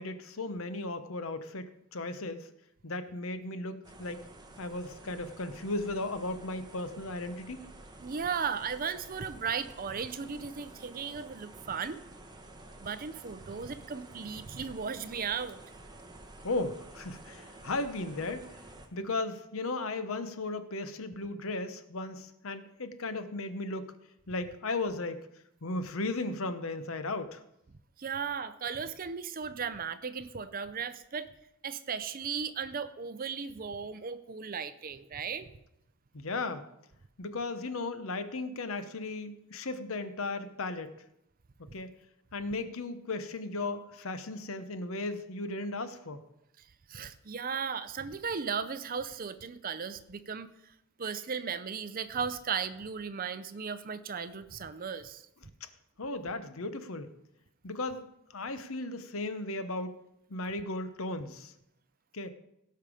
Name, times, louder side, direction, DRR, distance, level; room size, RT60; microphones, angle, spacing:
voice 1, 0.0-2.5 2.8-4.2 4.6-7.6 16.4-18.6 18.9-23.9 24.3-25.3 25.6-27.4 36.1-36.7 37.2-41.0 41.6-41.9 42.3-46.2 55.6-55.7 56.0-57.1 57.6-59.9 60.3-61.5 62.1-62.3, left 2 dB, 65° left, 11 dB, 0.9 m, -36 dB
sound 1, 3.8-18.9, right 2 dB, 20° right, 1.0 m, -51 dB
voice 2, 8.0-12.0 12.8-15.6 28.0-31.3 31.6-35.5 46.6-50.5 51.0-55.2, right 6 dB, 40° right, 12 dB, 0.5 m, -36 dB
17.0 x 5.7 x 4.9 m, 0.82 s
head